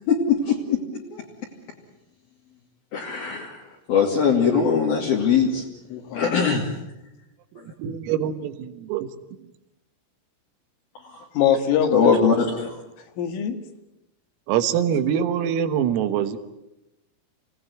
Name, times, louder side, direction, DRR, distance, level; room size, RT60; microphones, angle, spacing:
voice 1, 0.1-0.8 1.1-1.2 2.9-3.6 3.9-5.6 6.1-6.6 11.1-11.2 11.9-12.7, left 6 dB, 55° left, -2 dB, 3.9 m, -21 dB
voice 2, 5.5-6.4 11.3-12.7 13.2-13.6, left 8 dB, 75° left, 7 dB, 4.4 m, -25 dB
voice 3, 7.5-9.1 9.4-9.5 14.5-16.4, right 9 dB, 90° right, 10 dB, 4.1 m, -24 dB
27.0 x 18.5 x 9.3 m, 0.94 s
omnidirectional pair, 5.9 m